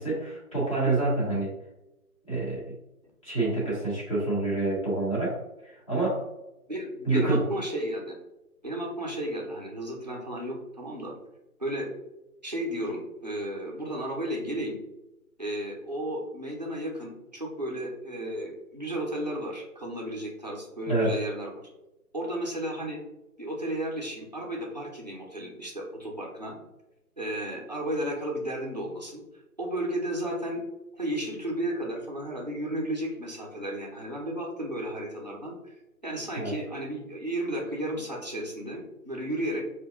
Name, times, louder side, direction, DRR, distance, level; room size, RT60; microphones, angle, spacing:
voice 1, 0.0-1.5 2.3-2.7 3.2-5.4 5.6-6.2 7.0-7.5 20.9-21.2 36.3-36.5, right 2 dB, 20° left, -8 dB, 1.2 m, -27 dB
voice 2, 6.7-8.2 8.6-11.1 11.6-11.9 12.4-14.8 15.4-21.5 22.1-23.0 23.4-26.6 27.2-29.2 29.6-30.7 31.0-35.8 36.0-39.6, right 1 dB, 30° right, -2 dB, 0.5 m, -33 dB
5.3 x 2.7 x 2.3 m, 0.95 s
hypercardioid pair, 170°, 46 cm